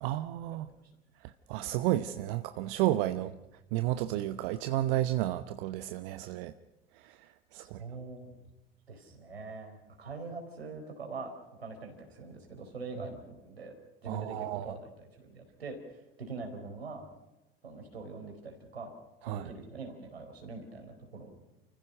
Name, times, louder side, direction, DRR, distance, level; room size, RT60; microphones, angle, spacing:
voice 1, 0.0-0.7 1.2-3.3 3.7-6.5 6.9-7.8 14.1-14.7 19.2-19.5, right 14 dB, 60° right, 11 dB, 0.9 m, -32 dB
voice 2, 7.6-8.4 8.9-13.7 14.0-17.1 17.6-18.9 19.2-21.3, right 3 dB, 85° right, 3 dB, 4.5 m, -43 dB
29.5 x 15.5 x 6.5 m, 0.98 s
figure-of-eight pair, 65°, 30 cm